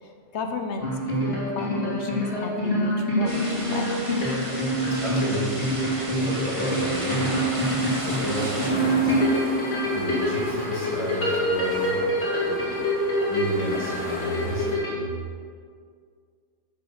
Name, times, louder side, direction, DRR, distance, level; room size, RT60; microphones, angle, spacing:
voice 1, 0.0-4.0, left 4 dB, 70° left, 4 dB, 1.0 m, -34 dB
sound 1, 0.8-14.9, equal, 50° left, 3.3 m, -26 dB
sound 2, 3.3-8.7, right 1 dB, 25° right, 1.8 m, -34 dB
voice 2, 4.9-5.8 6.1-7.6 7.8-9.2 9.5-9.7 9.9-12.0 12.4-12.7 13.3-15.1, equal, 25° left, -3 dB, 1.8 m, -32 dB
sound 3, 7.5-14.8, equal, 5° left, 2.7 m, -36 dB
7.3 x 7.0 x 7.0 m, 2.1 s
omnidirectional pair, 1.2 m